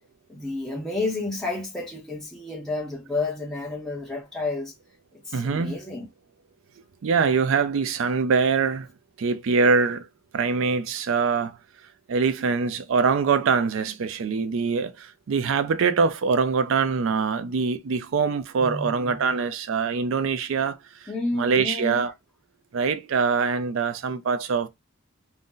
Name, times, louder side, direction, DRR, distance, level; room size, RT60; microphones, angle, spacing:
voice 1, 0.3-4.7 5.1-6.1 18.6-19.3 21.1-22.0, left 2 dB, 5° left, 0.7 m, -31 dB
voice 2, 5.3-5.7 7.0-8.9 9.2-10.1 10.3-11.6 12.1-21.1 21.3-22.1 22.7-24.7, right 5 dB, 65° right, 0.4 m, -23 dB
2.6 x 2.1 x 3.7 m
head